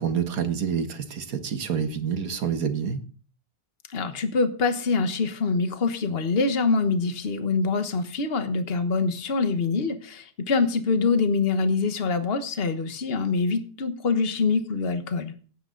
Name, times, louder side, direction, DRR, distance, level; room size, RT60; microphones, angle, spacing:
voice 1, 0.0-3.0, right 7 dB, 55° right, 8 dB, 1.7 m, -27 dB
voice 2, 3.9-15.3, left 4 dB, 35° left, 9 dB, 1.3 m, -25 dB
16.0 x 9.0 x 3.9 m, 0.40 s
omnidirectional pair, 1.9 m